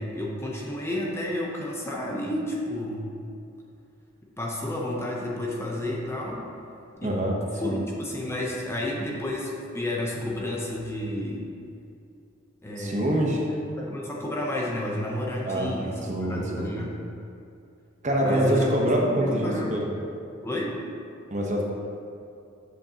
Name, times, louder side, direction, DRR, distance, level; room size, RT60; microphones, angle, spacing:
voice 1, 0.0-3.1 4.4-6.5 7.0-7.2 7.6-11.5 12.6-17.0 18.2-18.7 19.1-19.8 20.4-20.8, left 1 dB, 15° left, -3 dB, 0.7 m, -31 dB
voice 2, 7.0-7.4 7.6-7.8 12.8-13.4 15.5-15.7 16.1-16.7 18.0-19.9 21.3-21.6, right 1 dB, 35° right, -1 dB, 0.9 m, -25 dB
7.6 x 7.2 x 2.9 m, 2.6 s
head